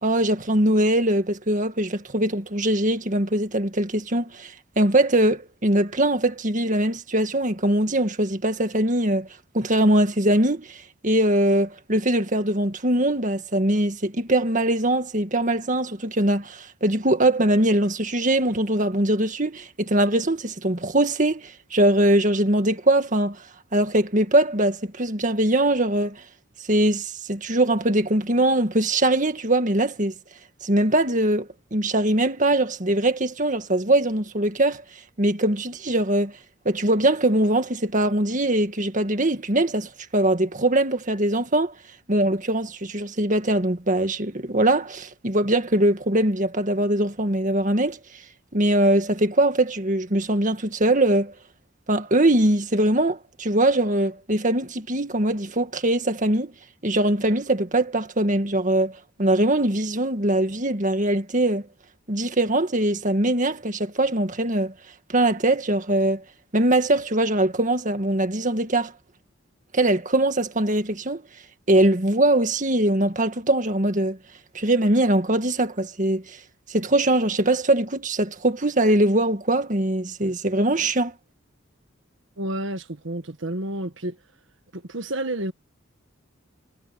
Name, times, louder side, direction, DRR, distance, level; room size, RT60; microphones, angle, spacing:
voice 1, 0.0-9.3 9.5-23.4 23.7-26.2 26.7-30.1 30.6-34.8 35.2-36.3 36.7-41.7 42.1-48.0 48.5-51.3 51.9-56.5 56.8-61.6 62.1-64.7 65.1-66.2 66.5-68.9 69.7-71.2 71.7-74.2 74.5-76.4 76.7-81.1, right 1 dB, 40° right, 1.9 m, -22 dB
voice 2, 82.4-84.2 84.7-85.5, right 1 dB, 70° right, 1.6 m, -30 dB
head